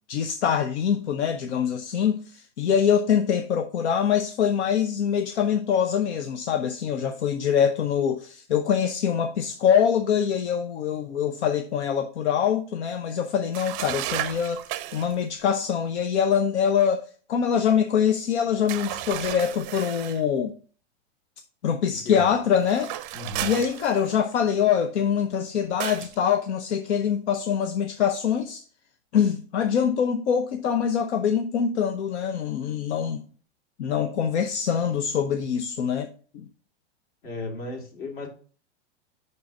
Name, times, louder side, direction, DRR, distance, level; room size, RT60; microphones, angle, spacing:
voice 1, 0.1-20.5 21.6-22.9 23.4-28.6 29.1-33.2 33.8-36.5, left 8 dB, 80° left, 0.8 m, -24 dB
sound 1, 13.5-15.2 18.7-20.2 22.6-24.3 25.8-26.2, right 14 dB, 40° right, 0.5 m, -33 dB
voice 2, 23.1-23.5 37.2-38.3, left 2 dB, 55° left, 2.6 m, -35 dB
5.5 x 3.9 x 5.8 m
hypercardioid pair, 125°, 34 cm